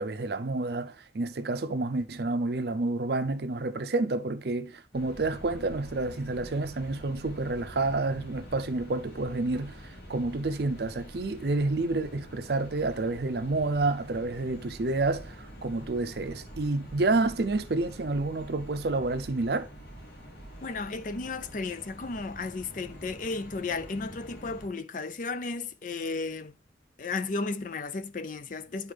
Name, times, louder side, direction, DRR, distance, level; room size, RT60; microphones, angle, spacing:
voice 1, 0.0-19.7, right 2 dB, 55° right, 0.5 m, -29 dB
sound 1, 4.9-24.7, equal, 65° left, 3.3 m, -46 dB
voice 2, 20.6-26.5 27.0-28.9, left 3 dB, 45° left, 0.5 m, -34 dB
10.5 x 4.3 x 3.3 m
head